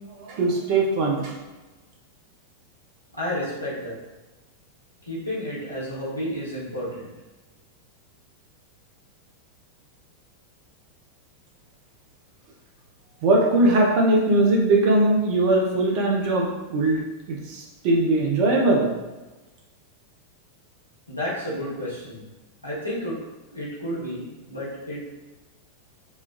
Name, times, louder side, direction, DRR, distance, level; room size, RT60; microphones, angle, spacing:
voice 1, 0.1-1.3 13.2-17.0 17.3-18.9, right 2 dB, 45° right, -1 dB, 0.6 m, -20 dB
voice 2, 3.1-4.0 5.0-7.1 21.1-22.3 22.6-23.2 23.5-25.0, equal, 85° left, -7 dB, 0.9 m, -31 dB
3.1 x 2.3 x 2.2 m, 1.1 s
figure-of-eight pair, 90°, 0 cm